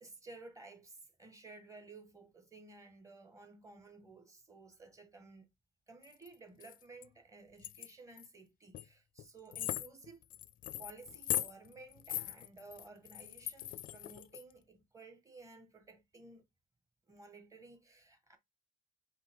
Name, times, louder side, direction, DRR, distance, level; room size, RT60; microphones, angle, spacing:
voice 1, 0.0-5.5 5.9-10.2 10.8-16.5 17.1-18.4, right 3 dB, 20° right, 1.4 m, -55 dB
sound 1, 6.0-6.3 6.6-7.0 7.6-8.3 8.7-8.8 9.2-9.3 9.5-14.4, left 12 dB, 55° left, 0.5 m, -40 dB
5.1 x 2.8 x 3.6 m
cardioid pair, 110°, 17 cm